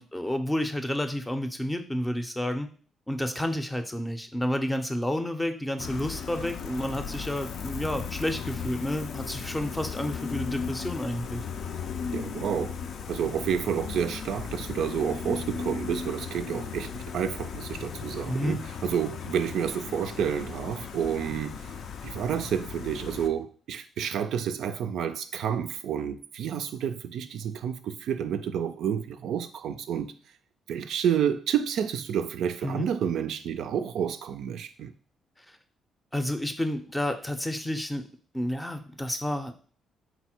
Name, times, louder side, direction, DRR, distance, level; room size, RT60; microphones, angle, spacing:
voice 1, 0.0-2.7 3.1-11.4 18.3-18.6 32.6-32.9 36.1-38.1 38.3-39.5, left 1 dB, 10° left, 0.5 m, -30 dB
Gull seagull, 5.8-23.3, left 6 dB, 65° left, 0.4 m, -36 dB
voice 2, 12.1-12.8 13.1-21.8 22.0-30.1 30.7-34.9, right 8 dB, 75° right, 0.3 m, -30 dB
4.0 x 2.1 x 4.3 m
cardioid pair, 90°, 0 cm